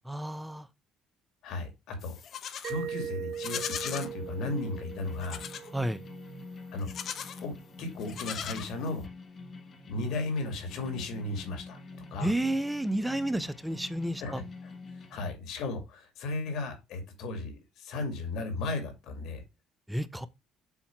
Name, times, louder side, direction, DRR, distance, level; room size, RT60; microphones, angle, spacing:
voice 1, 0.1-0.7 5.7-6.0 12.2-14.4 19.9-20.3, right 1 dB, 5° right, 0.6 m, -31 dB
voice 2, 1.4-2.1 2.7-5.4 6.7-6.9 7.4-9.1 9.9-11.8 12.1-12.3 14.2-14.7 15.1-19.4, left 2 dB, 70° left, 2.4 m, -35 dB
Livestock farm animals working animals, 2.0-2.8 3.3-4.1 5.2-5.7 6.8-7.4 8.0-9.1, left 8 dB, 55° left, 0.8 m, -38 dB
Mallet percussion, 2.6-7.3, right 8 dB, 55° right, 0.7 m, -41 dB
sound 1, 3.3-15.3, left 2 dB, 35° left, 1.4 m, -46 dB
7.2 x 2.8 x 5.8 m
cardioid pair, 100°, 0 cm